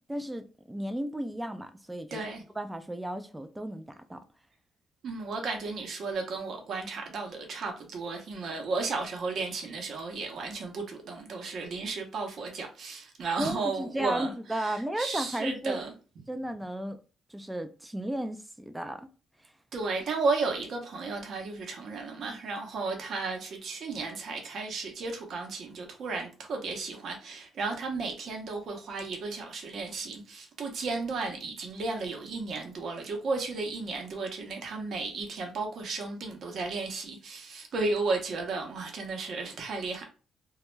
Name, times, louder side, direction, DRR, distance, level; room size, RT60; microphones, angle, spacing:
voice 1, 0.1-2.3 2.6-4.2 13.4-15.8 16.3-17.0 17.3-19.1 19.4-19.5, right 1 dB, 10° right, 0.3 m, -34 dB
voice 2, 2.1-2.4 5.0-15.9 19.7-40.1, right 3 dB, 60° right, 0.7 m, -34 dB
2.2 x 2.0 x 3.1 m
cardioid pair, 90°, 0 cm